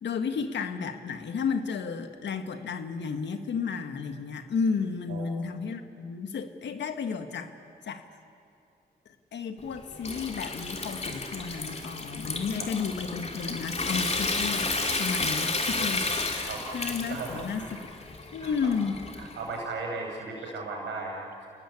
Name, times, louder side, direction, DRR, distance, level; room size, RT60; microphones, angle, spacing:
voice 1, 0.0-7.5 7.8-8.1 9.3-17.6 18.3-19.0 20.4-20.5, left 5 dB, 75° left, 7 dB, 1.8 m, -32 dB
Water tap faucet / Sink (filling or washing) / Trickle dribble, 9.6-19.5, left 3 dB, 35° left, 3.1 m, -32 dB
voice 2, 17.1-17.8 18.4-18.7 19.2-21.5, right 3 dB, 85° right, 0 dB, 6.9 m, -36 dB
29.0 x 19.5 x 8.6 m, 2.5 s
cardioid pair, 70°, 18 cm